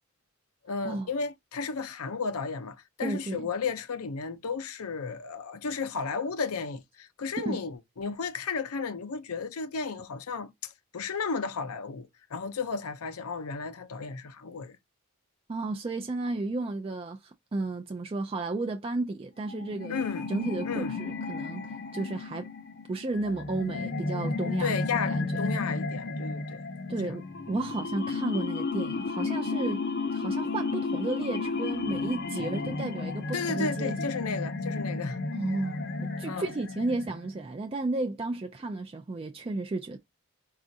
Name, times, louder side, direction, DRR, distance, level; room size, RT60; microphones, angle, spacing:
voice 1, 0.6-14.8 19.9-20.3 20.6-21.0 24.4-26.6 27.0-27.1 32.6-32.8 33.3-35.2 36.2-36.5, left 5 dB, 90° left, 0.6 m, -34 dB
voice 2, 3.0-3.5 7.4-7.6 15.5-21.6 21.9-22.5 22.9-24.8 25.1-25.4 26.9-29.8 30.1-34.1 35.3-40.0, right 2 dB, 25° right, 0.3 m, -33 dB
sound 1, 19.4-37.4, left 3 dB, 50° left, 0.6 m, -33 dB
5.1 x 2.4 x 2.6 m
head